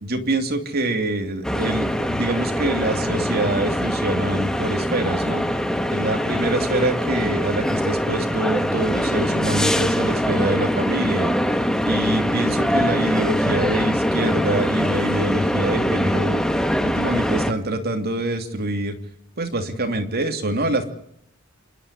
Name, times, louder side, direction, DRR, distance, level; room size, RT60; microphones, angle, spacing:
voice 1, 0.0-5.4 5.9-11.3 11.8-16.4 16.8-19.0 19.4-20.8, right 2 dB, 50° right, 7 dB, 2.9 m, -25 dB
sound 1, 1.4-17.5, equal, 5° left, 1.6 m, -23 dB
28.0 x 12.5 x 10.0 m, 0.73 s
head